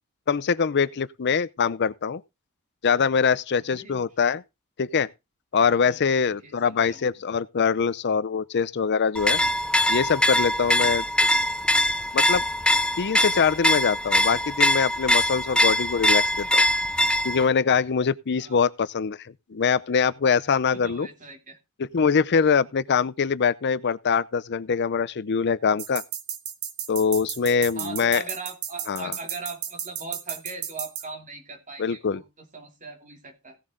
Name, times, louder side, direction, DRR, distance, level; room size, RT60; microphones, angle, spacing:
voice 1, 0.3-2.2 2.8-4.4 4.8-5.1 5.5-9.4 9.9-11.0 12.1-12.4 13.0-16.6 17.2-21.1 21.8-26.0 26.9-28.2 28.9-29.1 31.8-32.2, left 6 dB, 50° left, 0.5 m, -23 dB
voice 2, 3.6-4.1 5.8-7.1 10.7-10.9 16.3-16.8 18.3-18.6 20.7-21.6 22.6-22.7 27.7-33.6, right 3 dB, 35° right, 3.0 m, -40 dB
sound 1, 9.1-17.5, left 1 dB, 5° left, 0.5 m, -22 dB
sound 2, 25.8-31.0, right 9 dB, 85° right, 1.6 m, -33 dB
16.5 x 7.6 x 3.8 m
head